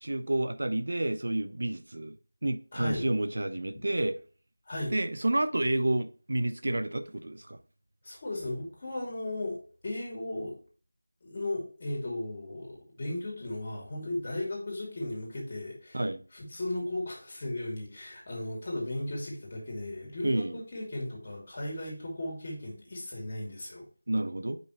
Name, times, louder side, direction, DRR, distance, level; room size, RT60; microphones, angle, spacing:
voice 1, 0.0-2.2 2.4-4.2 4.9-7.6 15.9-16.2 20.2-20.6 24.1-24.6, right 1 dB, 60° right, 0.7 m, -29 dB
voice 2, 2.7-3.1 3.7-3.8 4.7-4.9 8.0-10.6 11.2-16.0 16.3-23.8, left 1 dB, 30° left, 2.7 m, -36 dB
6.9 x 5.4 x 3.0 m
figure-of-eight pair, 175°, 0 cm